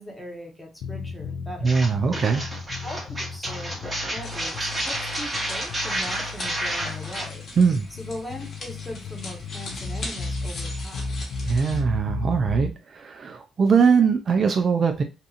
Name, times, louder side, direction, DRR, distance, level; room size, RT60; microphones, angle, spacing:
voice 1, 0.0-1.8 2.8-7.4 8.0-11.2, left 1 dB, 5° left, 1.1 m, -40 dB
sound 1, 0.8-12.8, left 3 dB, 75° left, 0.4 m, -34 dB
voice 2, 1.6-2.4 7.6-7.9 11.4-15.0, right 5 dB, 50° right, 0.3 m, -21 dB
sound 2, 1.7-7.3, right 1 dB, 20° right, 1.1 m, -30 dB
sound 3, 4.2-11.8, left 2 dB, 50° left, 1.0 m, -41 dB
2.7 x 2.4 x 2.5 m
cardioid pair, 90°, 0 cm